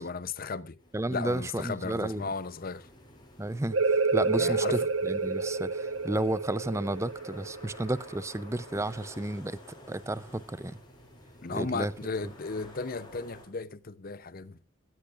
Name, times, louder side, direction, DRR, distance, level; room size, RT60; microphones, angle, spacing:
voice 1, 0.0-0.8 1.1-2.9 4.3-4.8 11.4-14.6, left 4 dB, 45° left, 0.7 m, -35 dB
sound 1, 0.8-13.4, left 1 dB, 20° left, 6.2 m, -52 dB
voice 2, 0.9-2.3 3.4-10.8 11.5-11.9, right 1 dB, 15° right, 0.6 m, -32 dB
sound 2, 3.7-9.1, right 4 dB, 85° right, 1.2 m, -29 dB
17.0 x 15.5 x 2.5 m
head